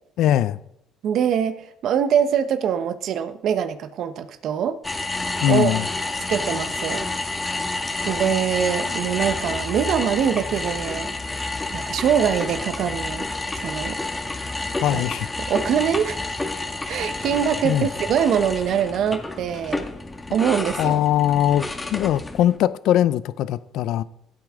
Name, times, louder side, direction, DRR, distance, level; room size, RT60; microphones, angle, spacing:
voice 1, 0.2-0.6 5.4-5.9 14.8-15.3 17.6-17.9 20.8-21.7 21.9-24.0, left 12 dB, 75° left, 0.5 m, -20 dB
voice 2, 1.0-4.8 5.5-5.8 6.3-7.1 8.0-13.2 13.6-14.0 14.9-15.0 15.5-16.2 16.9-19.9 20.3-21.0, right 8 dB, 65° right, 1.0 m, -23 dB
sound 1, 4.8-22.6, left 2 dB, 15° left, 1.8 m, -29 dB
16.0 x 8.8 x 3.7 m
supercardioid pair, 80°, 0 cm